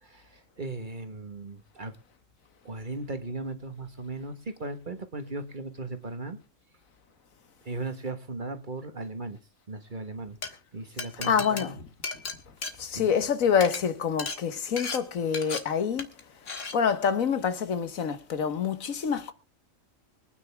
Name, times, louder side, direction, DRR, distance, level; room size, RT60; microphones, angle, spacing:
voice 1, 0.0-1.9 2.6-6.4 7.7-9.4 9.7-10.4 10.7-11.8 12.9-13.1, right 3 dB, 40° right, 1.6 m, -37 dB
Glass, 10.2-10.5 11.0-13.3 13.5-13.8 14.2-14.4 14.8-15.0 15.3-15.6 16.0-16.2 16.5-16.7, left 4 dB, 65° left, 2.0 m, -35 dB
voice 2, 11.2-11.7 12.8-16.1 16.7-19.3, left 7 dB, 90° left, 1.7 m, -26 dB
24.5 x 9.5 x 3.5 m
omnidirectional pair, 1.4 m